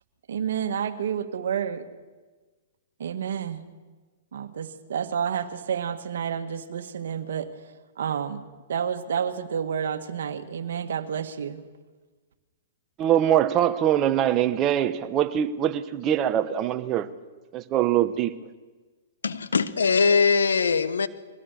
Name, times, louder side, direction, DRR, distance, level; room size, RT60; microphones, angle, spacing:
voice 1, 0.3-1.9 3.0-3.6 4.3-7.5 8.0-8.4 8.7-11.7, right 8 dB, 70° right, 1.6 m, -29 dB
voice 2, 13.0-17.1 17.5-18.3, right 11 dB, 30° right, 1.1 m, -23 dB
voice 3, 19.2-21.1, left 5 dB, 85° left, 1.1 m, -21 dB
23.0 x 16.5 x 6.8 m
hypercardioid pair, 125°, 0 cm